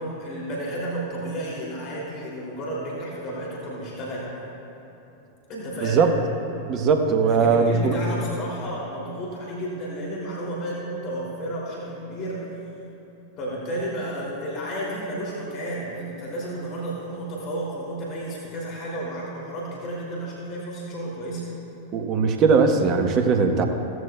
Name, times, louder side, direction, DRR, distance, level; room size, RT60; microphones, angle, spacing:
voice 1, 0.0-4.3 5.5-6.0 7.2-12.5 13.4-21.4, right 1 dB, 35° left, -4 dB, 3.0 m, -32 dB
voice 2, 6.7-8.0 21.9-23.7, right 5 dB, 35° right, 5 dB, 1.2 m, -20 dB
17.0 x 14.5 x 2.4 m, 3.0 s
figure-of-eight pair, 90°, 0 cm